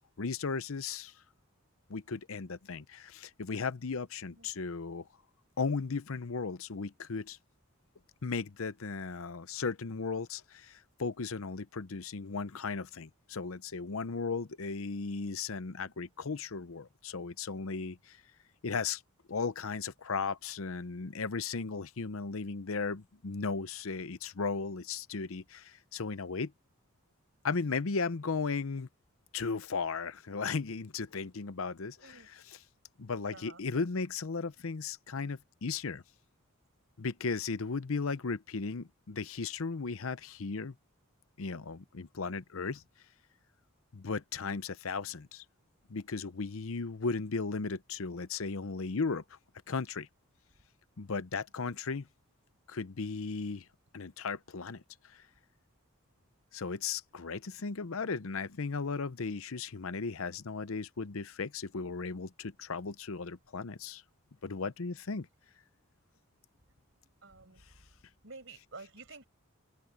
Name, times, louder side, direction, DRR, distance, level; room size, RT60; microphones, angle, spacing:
voice 1, 0.2-1.1 1.9-5.1 5.6-7.4 8.2-18.2 18.6-19.0 19.3-26.5 27.4-28.9 29.3-32.6 33.0-36.0 37.0-40.7 41.4-42.8 43.9-45.4 45.9-49.4 49.7-50.1 51.0-52.1 52.7-53.7 53.9-55.2 56.5-64.0 64.4-65.3, left 4 dB, 70° left, 0.7 m, -36 dB
voice 2, 4.4-4.7 32.0-32.3 33.3-33.6 38.1-38.2 51.6-51.8 67.2-67.6 68.2-69.3, right 3 dB, 60° right, 5.1 m, -51 dB
head